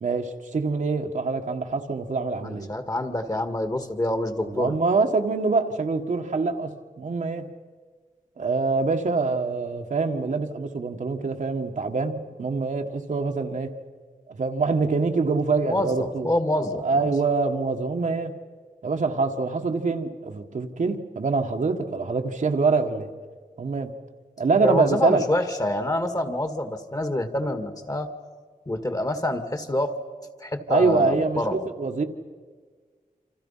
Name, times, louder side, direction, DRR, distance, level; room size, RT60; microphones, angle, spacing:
voice 1, 0.0-2.7 4.4-7.5 8.4-13.7 14.3-16.3 16.8-18.3 18.8-23.1 23.6-23.9 24.4-25.2 30.7-32.0, right 4 dB, 65° right, 4 dB, 1.7 m, -25 dB
voice 2, 2.4-4.7 15.7-17.1 24.6-28.1 28.7-29.9 30.4-31.6, left 1 dB, 25° left, 8 dB, 1.9 m, -27 dB
28.0 x 26.5 x 5.7 m, 1.5 s
wide cardioid pair, 110°, 14 cm